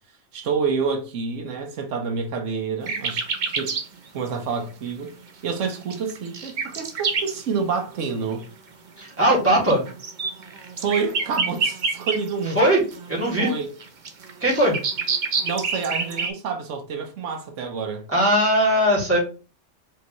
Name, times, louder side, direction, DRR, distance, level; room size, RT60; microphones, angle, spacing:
voice 1, 0.3-3.7 4.1-5.1 5.4-8.5 10.8-12.6 13.4-13.7 15.4-18.0, right 5 dB, 85° right, 1.2 m, -28 dB
sound 1, 2.9-3.9 4.3-4.4 5.6-7.4 8.3-8.4 9.2-12.6 12.9-16.3, right 4 dB, 45° right, 0.8 m, -27 dB
voice 2, 9.0-9.8 12.6-12.8 13.1-13.5 14.4-14.8 18.1-19.2, right 1 dB, 10° right, 2.0 m, -19 dB
5.0 x 3.4 x 3.0 m
omnidirectional pair, 1.3 m